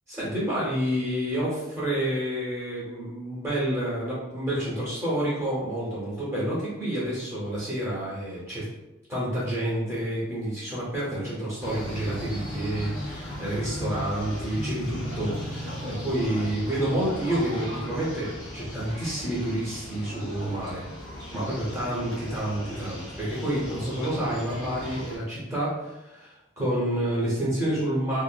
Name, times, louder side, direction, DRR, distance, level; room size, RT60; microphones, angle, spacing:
voice 1, 0.1-8.7 9.1-20.8 21.3-28.2, right 1 dB, 15° right, -9 dB, 0.7 m, -29 dB
sound 1, 11.6-25.2, left 1 dB, 90° left, 0.9 m, -36 dB
2.7 x 2.4 x 2.2 m, 0.97 s
head